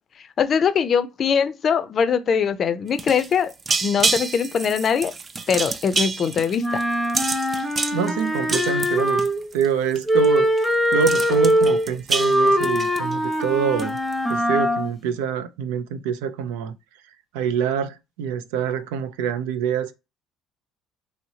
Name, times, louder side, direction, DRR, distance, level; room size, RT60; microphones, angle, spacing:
voice 1, 0.4-3.5 3.8-5.1 5.5-6.6, left 7 dB, 45° left, 0.4 m, -21 dB
sound 1, 2.9-9.7 9.9-10.3 10.6-10.7 10.9-13.4 13.8-14.1, right 4 dB, 30° right, 0.4 m, -28 dB
Wind instrument woodwind instrument, 6.6-9.5 10.1-14.9, equal, 5° left, 0.7 m, -22 dB
voice 2, 7.9-9.3 9.5-14.0 14.3-16.8 17.3-19.9, right 8 dB, 90° right, 0.4 m, -26 dB
3.1 x 2.8 x 2.7 m
supercardioid pair, 90°, 0 cm